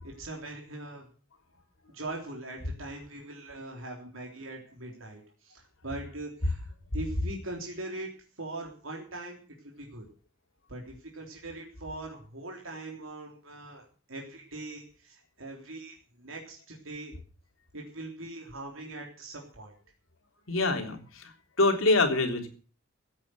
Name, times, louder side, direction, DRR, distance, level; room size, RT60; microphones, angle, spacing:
voice 1, 0.0-1.1 1.9-8.1 8.4-10.1 10.7-13.8 14.1-17.1 17.7-19.7, right 2 dB, 80° right, 0 dB, 3.5 m, -41 dB
voice 2, 20.5-21.3 21.6-22.5, left 2 dB, 90° left, 4 dB, 3.5 m, -25 dB
16.0 x 8.8 x 7.8 m, 0.40 s
head